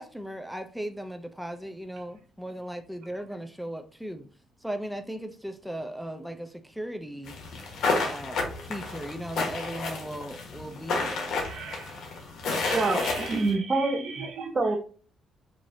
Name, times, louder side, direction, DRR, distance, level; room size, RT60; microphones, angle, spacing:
voice 1, 0.0-4.3 4.6-7.4 8.0-11.4, right 1 dB, ahead, 0.5 m, -37 dB
sound 1, 7.3-13.5, left 3 dB, 70° left, 1.2 m, -31 dB
voice 2, 11.4-11.9 12.6-14.5, right 5 dB, 80° right, 1.1 m, -38 dB
voice 3, 12.7-14.0 14.5-14.8, right 3 dB, 30° right, 0.7 m, -26 dB
4.7 x 2.7 x 2.6 m
cardioid pair, 90°, 0 cm